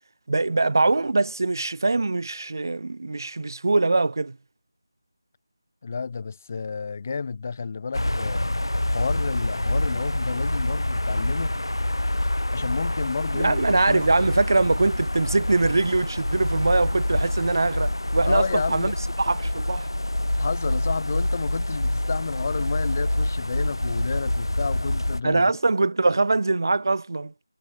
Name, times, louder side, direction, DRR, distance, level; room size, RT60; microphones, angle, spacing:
voice 1, 0.3-4.4 13.3-19.9 25.2-27.3, right 3 dB, 55° right, 2.3 m, -23 dB
voice 2, 5.8-8.5 8.9-11.6 12.5-14.0 18.3-19.0 20.4-25.6, left 5 dB, 35° left, 7.1 m, -31 dB
sound 1, 7.9-25.2, left 1 dB, 80° left, 2.1 m, -26 dB
figure-of-eight pair, 165°, 2 cm